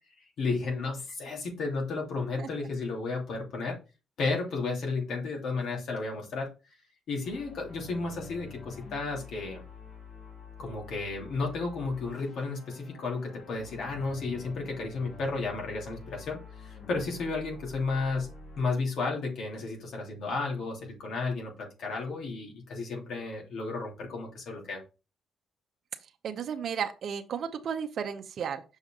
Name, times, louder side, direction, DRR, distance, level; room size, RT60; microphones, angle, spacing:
voice 1, 0.4-3.8 4.2-6.5 7.1-9.6 10.6-18.3 18.6-24.8, left 3 dB, 70° left, 0 dB, 2.9 m, -33 dB
sound 1, 7.2-18.6, left 5 dB, 50° left, 3.0 m, -48 dB
voice 2, 26.2-28.6, right 7 dB, 60° right, 6 dB, 0.8 m, -33 dB
6.4 x 5.1 x 3.7 m, 0.30 s
cardioid pair, 90°, 0 cm